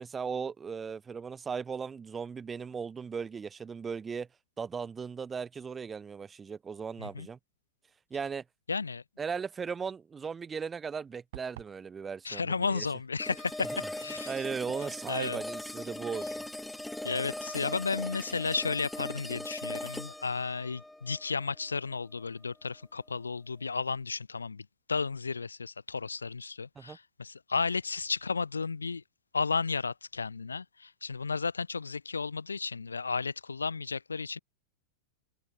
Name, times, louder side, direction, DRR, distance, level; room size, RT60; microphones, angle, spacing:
voice 1, 0.0-4.3 4.6-7.4 8.1-8.4 9.2-12.9 14.3-16.5 26.8-27.0, right 6 dB, 15° right, 0.9 m, -37 dB
voice 2, 8.7-9.0 12.2-14.3 15.1-15.4 17.0-29.0 29.3-34.4, left 4 dB, 75° left, 0.5 m, -33 dB
sound 1, 11.3-11.8, right 15 dB, 55° right, 0.9 m, -46 dB
sound 2, 13.2-22.2, left 1 dB, 5° left, 2.3 m, -40 dB
figure-of-eight pair, 90°, 0 cm